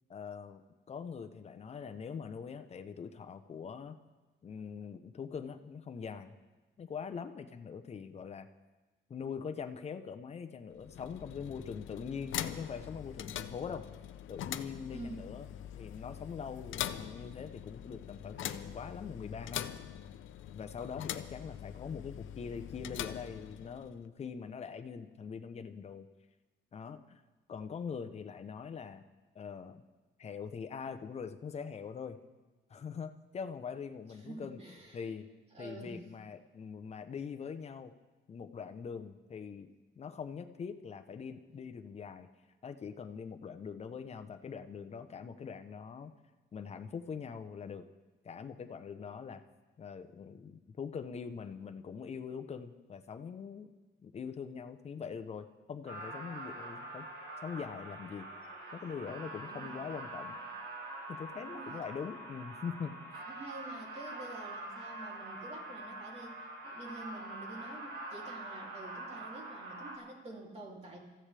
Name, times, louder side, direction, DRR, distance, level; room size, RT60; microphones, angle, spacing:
voice 1, 0.1-4.0 4.4-6.4 6.8-8.5 9.1-13.8 14.3-15.5 15.7-19.7 20.5-26.1 26.7-27.2 27.5-29.0 29.3-29.8 30.2-32.2 32.7-34.6 34.9-35.3 35.6-37.9 38.3-39.7 40.0-42.3 42.6-46.1 46.5-47.9 48.2-49.4 49.8-53.7 54.0-57.1 57.4-58.3 58.7-60.4 61.1-63.0, left 6 dB, 35° left, 8 dB, 0.8 m, -43 dB
sound 1, 10.7-24.0, left 11 dB, 90° left, 0.7 m, -43 dB
voice 2, 14.9-15.3 34.1-35.1 35.5-36.0 59.4-59.9 60.3-60.4 61.4-61.8 63.3-71.0, right 2 dB, 30° right, -1 dB, 3.0 m, -48 dB
sound 2, 55.9-70.0, right 2 dB, 70° right, 4.1 m, -45 dB
24.5 x 14.5 x 3.4 m, 1.2 s
cardioid pair, 160°, 20 cm